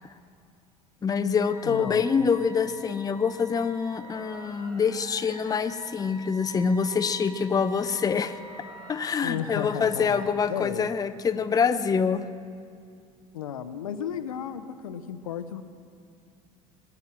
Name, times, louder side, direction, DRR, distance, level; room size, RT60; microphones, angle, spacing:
voice 1, 1.0-8.4 8.9-12.3, left 6 dB, 20° left, 11 dB, 0.7 m, -25 dB
sound 1, 1.4-10.3, equal, 25° right, 4.5 m, -46 dB
voice 2, 1.6-2.3 9.2-10.9 13.3-15.6, left 9 dB, 70° left, 11 dB, 0.8 m, -34 dB
21.0 x 9.4 x 7.3 m, 2.3 s
figure-of-eight pair, 65°, 19 cm